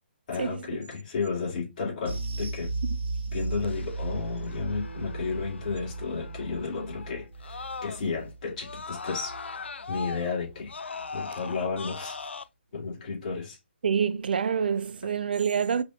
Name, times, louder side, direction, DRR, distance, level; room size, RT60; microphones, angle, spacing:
voice 1, 0.3-2.8 3.3-10.7 11.1-12.3 12.7-13.6, left 5 dB, 40° left, 2.3 m, -33 dB
sound 1, 2.1-10.7 11.0-11.2 11.6-11.7, right 3 dB, 85° right, 1.4 m, -36 dB
Screaming, 3.6-8.3 8.6-12.4, left 4 dB, 75° left, 0.5 m, -40 dB
Guitar, 4.7-7.9 8.3-8.4, equal, 60° left, 1.4 m, -51 dB
voice 2, 13.8-15.8, right 7 dB, 55° right, 0.4 m, -26 dB
5.0 x 3.4 x 2.3 m
figure-of-eight pair, 145°, 6 cm